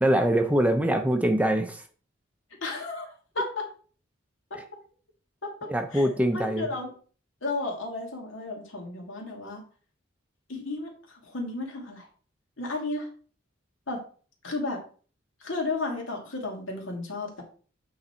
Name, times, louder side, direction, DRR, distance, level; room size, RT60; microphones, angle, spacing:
voice 1, 0.0-1.8 5.7-6.7, right 1 dB, 5° right, 6 dB, 0.6 m, -23 dB
voice 2, 2.6-3.1 3.3-3.7 4.5-4.6 5.4-6.9 7.4-9.6 10.5-12.1 12.6-13.1 13.9-14.0 14.4-14.8 15.4-17.4, left 2 dB, 80° left, 1 dB, 2.2 m, -33 dB
8.5 x 4.0 x 4.4 m, 0.41 s
head